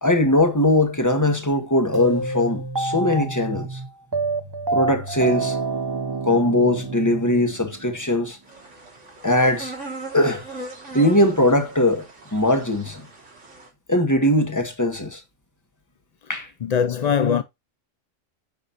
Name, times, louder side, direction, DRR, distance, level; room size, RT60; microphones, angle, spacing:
voice 1, 0.0-3.8 4.7-5.6 6.3-8.4 9.2-9.7 10.1-10.4 10.9-12.1 12.3-13.1 13.9-15.2 16.3-16.5, left 1 dB, 15° left, 1.8 m, -20 dB
sound 1, 1.9-8.1, right 3 dB, 20° right, 0.8 m, -27 dB
sound 2, 8.5-13.7, right 2 dB, 70° right, 2.9 m, -39 dB
voice 2, 16.6-17.4, left 7 dB, 60° left, 0.4 m, -21 dB
9.7 x 6.4 x 2.8 m
omnidirectional pair, 1.3 m